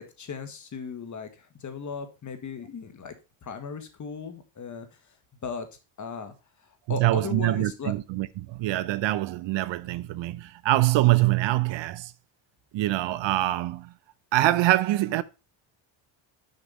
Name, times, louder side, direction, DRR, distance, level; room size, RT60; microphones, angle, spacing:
voice 1, 0.0-3.1 3.4-5.1 5.4-5.7 6.0-6.3 6.9-7.9, left 5 dB, 35° left, 1.7 m, -37 dB
voice 2, 6.9-12.1 12.7-13.9 14.3-15.2, right 16 dB, 60° right, 0.7 m, -24 dB
6.7 x 5.9 x 5.3 m
cardioid pair, 105°, 49 cm